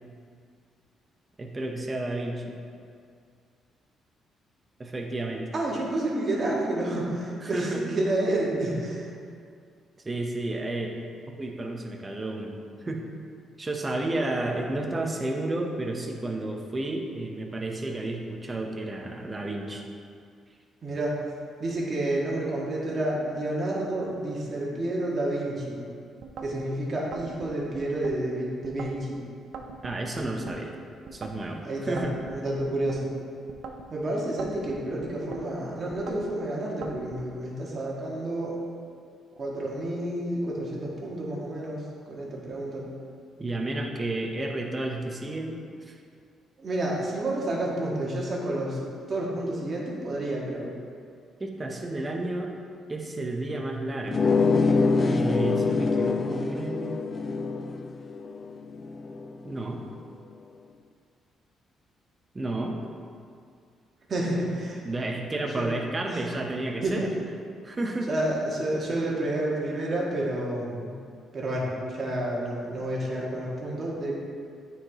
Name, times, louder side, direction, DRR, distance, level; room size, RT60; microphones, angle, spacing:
voice 1, 1.4-2.6 4.8-5.5 7.4-7.8 10.0-10.9 11.3-12.6 12.8-13.0 13.6-19.8 29.8-30.7 31.1-32.1 43.4-45.9 51.4-52.5 52.9-54.4 55.1-57.0 59.4-59.9 62.3-62.8 64.8-67.1 67.6-68.1, right 2 dB, 25° right, 2 dB, 0.9 m, -31 dB
voice 2, 5.5-9.1 20.8-21.2 21.6-25.8 26.4-29.2 31.6-33.1 33.9-38.6 39.4-41.8 42.1-42.9 46.6-48.8 49.1-50.7 64.1-64.8 65.5-65.7 66.1-66.2 66.8-67.0 68.1-70.9 71.3-74.1, right 1 dB, 45° right, -4 dB, 1.6 m, -29 dB
sound 1, 26.2-26.6 27.1-28.2 28.6-29.1 29.5-30.6 31.1-31.5 32.0-33.0 33.5-33.9 34.4-35.4 35.9-36.3 36.8-37.2, right 5 dB, 70° right, 0.5 m, -41 dB
sound 2, 54.1-59.4, left 4 dB, 40° left, 0.3 m, -25 dB
8.7 x 4.8 x 3.0 m, 2.3 s
cardioid pair, 90°, 0 cm